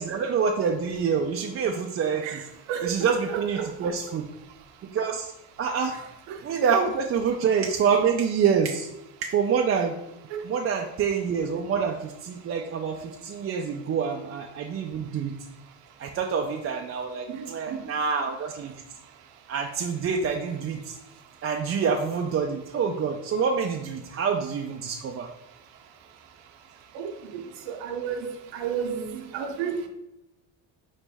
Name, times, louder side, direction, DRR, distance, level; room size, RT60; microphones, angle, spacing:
voice 1, 0.0-2.4 2.8-4.2 4.8-5.3 5.6-5.9 6.4-8.9 9.2-9.9 10.4-15.3 16.0-18.7 19.5-21.0 21.4-25.3, right 6 dB, 35° right, 2 dB, 0.4 m, -26 dB
voice 2, 2.7-3.7 6.3-6.4 10.3-10.4 17.3-17.8 26.9-27.4 27.7-29.9, right 7 dB, 80° right, 4 dB, 0.8 m, -32 dB
4.1 x 3.1 x 3.4 m, 0.90 s
supercardioid pair, 85°, 43 cm